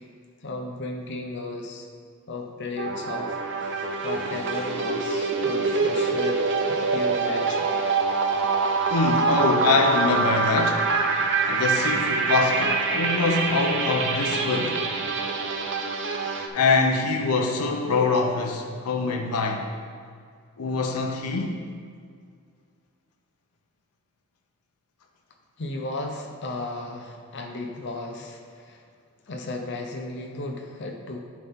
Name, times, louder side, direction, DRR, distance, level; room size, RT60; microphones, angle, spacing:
voice 1, 0.4-1.9 2.3-7.7 25.6-28.8 29.3-31.2, left 2 dB, 50° left, 2 dB, 0.7 m, -35 dB
sound 1, 2.8-16.5, right 4 dB, 55° right, 0.6 m, -25 dB
voice 2, 8.9-10.9 11.5-14.8 16.5-19.7 20.6-21.5, left 3 dB, 90° left, 3 dB, 0.7 m, -24 dB
11.0 x 4.2 x 3.6 m, 2.1 s
head